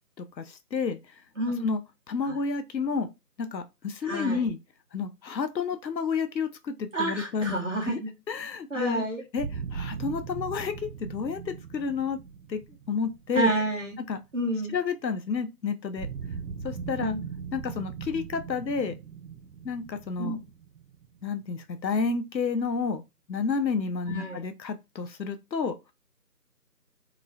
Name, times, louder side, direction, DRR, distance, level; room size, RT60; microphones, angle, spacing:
voice 1, 0.2-1.0 1.6-1.8 2.1-3.1 3.5-4.6 4.9-7.5 7.8-8.0 8.3-9.0 9.3-10.7 11.0-12.2 12.5-12.6 12.9-13.5 14.1-14.2 14.7-16.1 16.6-17.1 17.5-19.0 19.6-20.4 21.2-23.0 23.3-25.7, left 5 dB, 90° left, 0.6 m, -30 dB
voice 2, 1.4-1.7 2.2-2.3 4.0-4.5 6.9-8.1 8.7-9.2 13.3-14.0 14.3-14.7 17.0-17.3 20.2-20.4 24.1-24.4, right 1 dB, 45° right, 1.2 m, -29 dB
sound 1, 9.4-14.3 16.0-21.6, right 6 dB, 75° right, 0.6 m, -39 dB
2.9 x 2.0 x 2.6 m
figure-of-eight pair, 165°, 50 cm